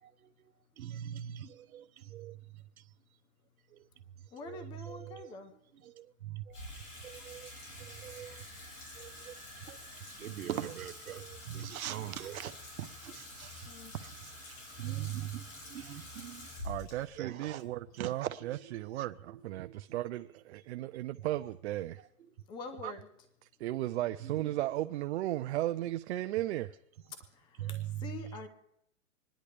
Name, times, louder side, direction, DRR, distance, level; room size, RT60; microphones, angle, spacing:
voice 1, 0.8-2.4 3.7-3.8 4.4-5.3 5.8-6.7 7.0-7.5 7.8-8.4 9.0-9.3 9.7-9.8 10.2-12.5 12.8-13.7 14.0-14.3 14.8-15.4 15.7-16.5 17.2-17.6 18.0-18.3 19.6-19.7 27.6-27.8, right 12 dB, 90° right, 0.9 m, -41 dB
voice 2, 4.3-5.5 13.6-13.9 22.5-23.1 27.3-28.5, left 4 dB, 10° left, 0.5 m, -45 dB
Water tap faucet / Sink (filling or washing), 6.5-18.9, left 1 dB, 60° left, 6.2 m, -48 dB
voice 3, 16.6-22.1 22.8-22.9 23.6-26.7, right 15 dB, 55° right, 0.5 m, -35 dB
26.5 x 10.5 x 3.4 m
hypercardioid pair, 150°, 41 cm